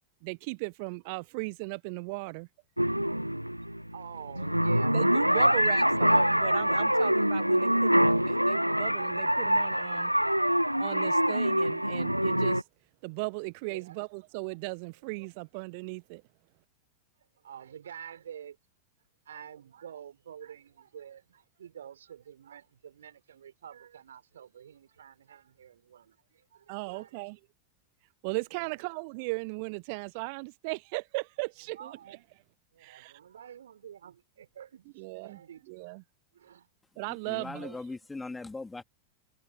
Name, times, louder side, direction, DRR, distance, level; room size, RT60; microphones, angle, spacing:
voice 1, 0.2-2.5 4.9-10.1 10.8-12.7 13.0-16.2 26.7-27.4 28.2-32.2 32.8-33.1 35.0-35.4 35.7-36.0 37.0-37.8, right 31 dB, 45° right, 1.0 m, -37 dB
sound 1, 2.8-12.6, equal, 90° right, 0.5 m, -25 dB
voice 2, 3.6-6.1 13.7-14.0 15.2-15.3 17.2-18.6 19.2-27.2 28.5-28.8 31.7-32.3 32.7-34.9 35.2-35.9 36.3-36.7 37.2-37.6, right 9 dB, 65° right, 5.0 m, -48 dB
voice 3, 37.1-38.8, left 3 dB, 10° left, 2.9 m, -40 dB
figure-of-eight pair, 90°, 0 cm